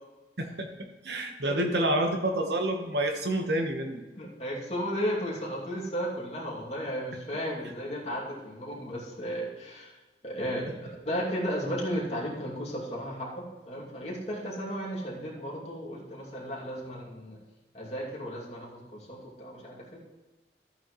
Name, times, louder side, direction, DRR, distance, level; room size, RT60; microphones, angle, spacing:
voice 1, 0.4-4.0, right 1 dB, 75° right, 5 dB, 1.3 m, -28 dB
voice 2, 4.2-9.9 10.2-17.4 17.7-18.8 19.1-20.0, equal, 35° left, -5 dB, 2.6 m, -34 dB
12.5 x 8.6 x 3.2 m, 1.2 s
head